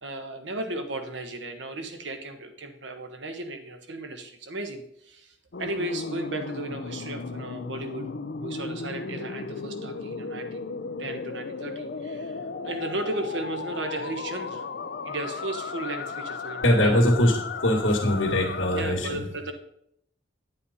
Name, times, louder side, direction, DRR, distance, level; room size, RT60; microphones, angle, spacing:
voice 1, 0.0-8.0 8.4-10.6 11.0-14.6 15.0-17.2 18.7-19.5, right 2 dB, 65° right, 6 dB, 1.3 m, -35 dB
sound 1, 5.5-18.8, left 4 dB, 55° left, 0.5 m, -35 dB
voice 2, 16.6-19.2, left 1 dB, 85° left, -1 dB, 2.0 m, -22 dB
9.6 x 8.6 x 4.2 m, 0.74 s
head